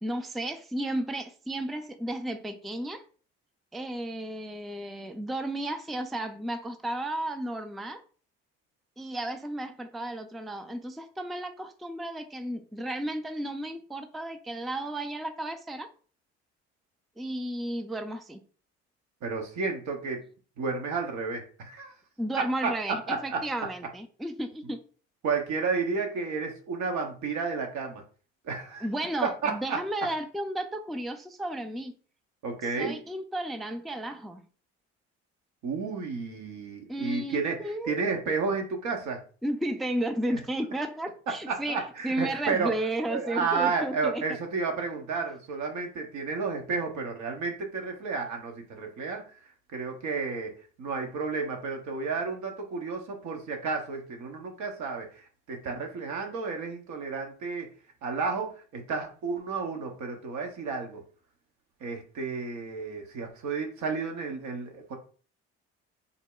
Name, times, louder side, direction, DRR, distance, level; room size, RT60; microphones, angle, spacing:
voice 1, 0.0-3.0 3.7-8.0 9.0-15.9 17.2-18.4 22.2-24.8 28.8-31.9 32.6-34.4 36.9-38.0 39.4-44.2, right 1 dB, ahead, 7 dB, 0.4 m, -33 dB
voice 2, 19.2-20.2 20.6-21.9 22.4-22.7 23.1-23.4 25.2-28.0 28.4-28.9 29.2-29.8 32.4-33.0 35.6-39.2 40.3-40.4 41.5-42.7 43.1-49.2 49.7-57.7 58.0-61.0 61.8-65.0, right 4 dB, 70° right, 3 dB, 1.0 m, -32 dB
3.6 x 2.2 x 3.7 m, 0.40 s
hypercardioid pair, 60°, 31 cm